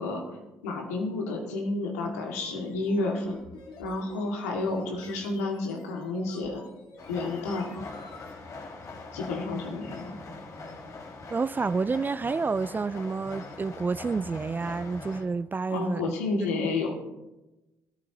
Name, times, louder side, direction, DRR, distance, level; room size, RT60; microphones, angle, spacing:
voice 1, 0.0-3.4 3.8-6.7 7.1-7.7 9.1-10.2 15.7-17.0, left 3 dB, 85° left, 2.1 m, -30 dB
sound 1, 1.9-8.3, left 4 dB, 65° left, 2.2 m, -50 dB
sound 2, 7.0-15.3, left 3 dB, 45° left, 2.4 m, -42 dB
voice 2, 11.3-16.1, right 4 dB, 25° right, 0.3 m, -29 dB
19.0 x 13.5 x 3.0 m
hypercardioid pair, 50°, 8 cm